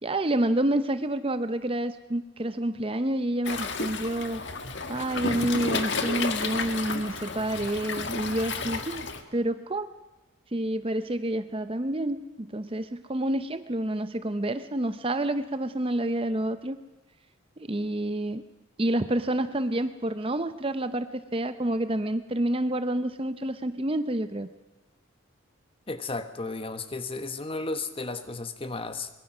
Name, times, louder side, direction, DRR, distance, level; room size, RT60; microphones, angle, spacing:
voice 1, 0.0-4.4 4.9-9.9 10.5-16.8 17.6-18.4 18.8-24.5, right 1 dB, 25° right, 11 dB, 0.7 m, -28 dB
Waves surf, 3.5-9.2, left 4 dB, 55° left, 1.8 m, -32 dB
voice 2, 25.9-29.1, left 3 dB, 25° left, 9 dB, 1.3 m, -34 dB
24.5 x 22.5 x 6.2 m, 1.1 s
head